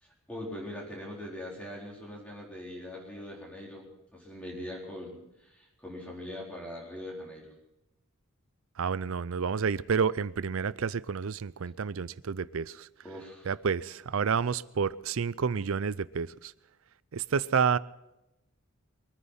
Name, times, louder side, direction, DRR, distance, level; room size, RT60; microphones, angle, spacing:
voice 1, 0.0-7.5 13.0-13.5, left 1 dB, 5° left, -3 dB, 4.1 m, -42 dB
voice 2, 8.8-12.9 13.5-16.5 17.1-17.8, right 6 dB, 65° right, 18 dB, 0.5 m, -29 dB
23.5 x 9.7 x 5.7 m, 0.91 s
head